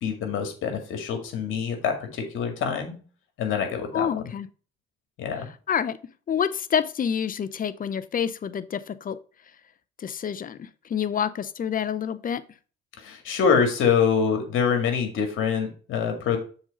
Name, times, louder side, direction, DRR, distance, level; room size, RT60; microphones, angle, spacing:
voice 1, 0.0-3.0 3.4-4.1 5.2-5.5 13.0-16.4, left 6 dB, 75° left, 2.0 m, -25 dB
voice 2, 3.9-4.5 5.7-6.0 6.3-9.2 10.0-10.6 10.9-12.4, left 8 dB, 40° left, 0.7 m, -27 dB
7.2 x 3.9 x 5.1 m
supercardioid pair, 75°, 21 cm